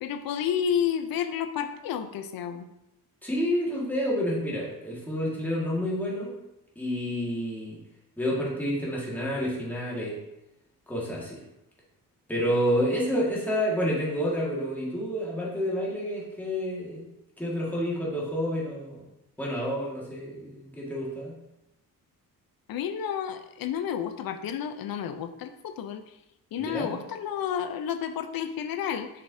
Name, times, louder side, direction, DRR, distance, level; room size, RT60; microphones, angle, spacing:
voice 1, 0.0-2.7 22.7-26.0 26.5-29.1, left 8 dB, 65° left, 10 dB, 0.7 m, -31 dB
voice 2, 3.2-6.4 6.8-7.8 8.2-10.1 10.9-11.4 12.3-17.0 17.4-19.0 19.4-21.4 26.6-27.0, equal, 5° left, -5 dB, 1.8 m, -29 dB
6.7 x 5.3 x 2.7 m, 0.88 s
cardioid pair, 110°, 37 cm